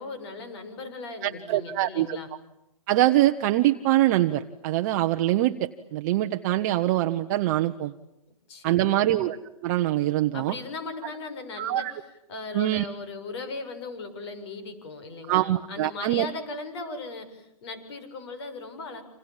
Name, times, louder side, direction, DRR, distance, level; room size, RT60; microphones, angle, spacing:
voice 1, 0.0-2.3 8.5-9.1 10.3-11.9 12.3-19.0, left 3 dB, 45° left, 10 dB, 6.7 m, -38 dB
voice 2, 1.2-2.2 2.9-7.9 8.6-10.5 11.6-11.9 12.5-12.9 15.3-16.3, right 15 dB, 30° right, 6 dB, 1.1 m, -24 dB
29.5 x 27.5 x 7.5 m, 0.85 s
hypercardioid pair, 160°, 18 cm